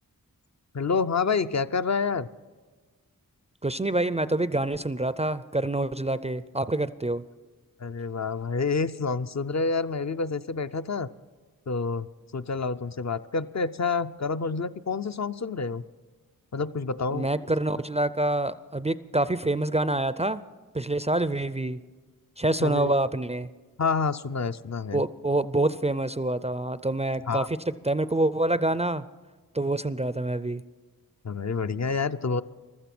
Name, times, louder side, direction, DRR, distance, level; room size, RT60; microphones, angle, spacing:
voice 1, 0.7-2.3 7.8-11.1 11.7-12.1 12.3-15.8 16.5-17.3 22.6-22.9 23.8-25.0 27.3-27.5 31.2-32.4, left 4 dB, 50° left, 10 dB, 0.5 m, -28 dB
voice 2, 3.6-7.2 17.1-20.4 20.7-21.8 22.4-23.5 24.9-27.6 27.8-29.0 29.5-30.6, right 2 dB, 20° right, 15 dB, 0.4 m, -26 dB
15.5 x 13.0 x 6.0 m, 1.3 s
wide cardioid pair, 65°, 35 cm